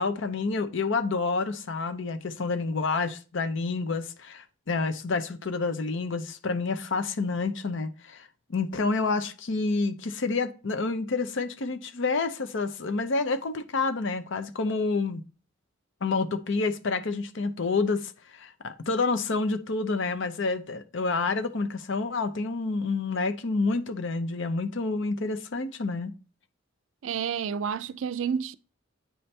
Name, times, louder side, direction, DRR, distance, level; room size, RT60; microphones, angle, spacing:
voice 1, 0.0-15.2 16.0-26.1, left 3 dB, 70° left, 0.7 m, -28 dB
voice 2, 27.0-28.5, right 7 dB, 70° right, 0.4 m, -30 dB
9.1 x 3.3 x 4.2 m
head